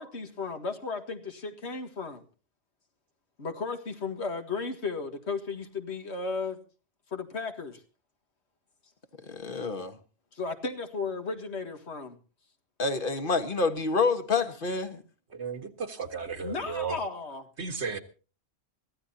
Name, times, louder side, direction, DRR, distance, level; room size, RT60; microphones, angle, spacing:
voice 1, 0.0-2.2 3.4-6.6 7.1-7.8 10.3-12.2 16.4-17.4, left 4 dB, 80° left, 2.1 m, -34 dB
voice 2, 9.3-10.0 12.8-15.0, left 4 dB, 55° left, 1.6 m, -28 dB
voice 3, 15.3-17.0 17.6-18.0, right 5 dB, 80° right, 1.9 m, -34 dB
23.0 x 15.5 x 2.8 m
omnidirectional pair, 1.1 m